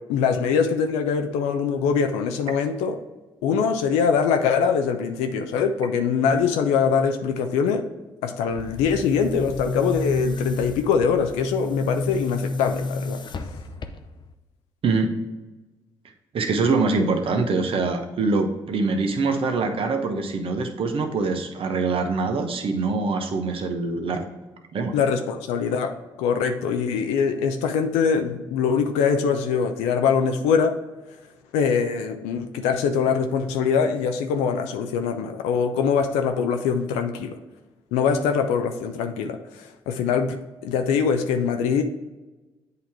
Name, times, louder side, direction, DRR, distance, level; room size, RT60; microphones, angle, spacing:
voice 1, 0.1-3.0 3.4-7.8 8.2-13.2 24.9-25.9 26.2-30.7 31.5-37.3 37.9-40.4 40.6-41.8, left 6 dB, 85° left, 5 dB, 0.5 m, -23 dB
Boom, 8.5-14.3, left 2 dB, 45° left, 0.6 m, -31 dB
voice 2, 14.8-15.2 16.3-24.2 24.7-24.9, right 3 dB, 55° right, 5 dB, 1.0 m, -24 dB
8.1 x 2.9 x 4.6 m, 1.1 s
supercardioid pair, 55°, 11 cm